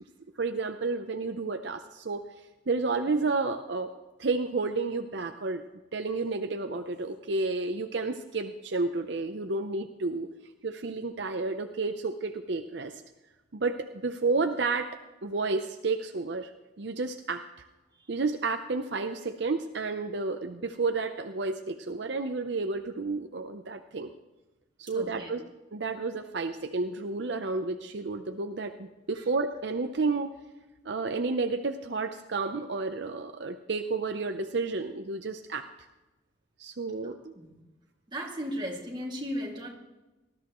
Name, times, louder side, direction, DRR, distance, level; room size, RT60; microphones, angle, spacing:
voice 1, 0.4-2.2 2.7-3.9 4.2-5.6 5.9-10.3 10.6-13.0 13.5-15.0 15.2-16.5 16.8-17.5 18.1-24.1 24.8-25.4 25.7-30.3 30.8-35.7 36.6-37.3, right 3 dB, 65° right, 7 dB, 0.7 m, -31 dB
voice 2, 24.9-25.3 29.2-29.3 37.0-37.6 38.1-39.7, equal, 25° right, -1 dB, 2.3 m, -36 dB
19.0 x 13.5 x 3.1 m, 1.1 s
head